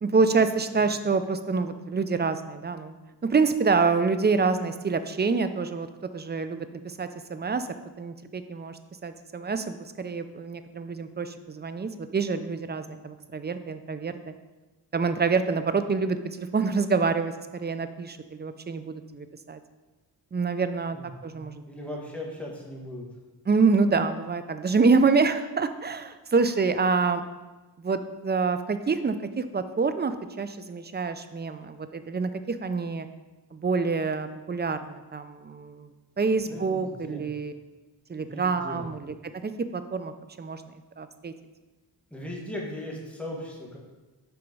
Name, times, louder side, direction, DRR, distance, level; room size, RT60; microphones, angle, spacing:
voice 1, 0.0-3.0 3.2-5.9 6.1-7.7 8.0-14.2 14.9-19.6 20.3-21.0 21.2-21.6 23.5-27.2 27.8-33.1 33.5-35.9 36.2-37.5 38.1-40.1 40.4-40.6 41.0-41.3, right 4 dB, 25° right, 10 dB, 0.5 m, -26 dB
voice 2, 20.9-23.1 36.5-37.3 38.2-38.9 42.1-43.8, left 1 dB, 5° left, -3 dB, 1.9 m, -38 dB
6.9 x 4.5 x 5.3 m, 1.2 s
cardioid pair, 80°, 42 cm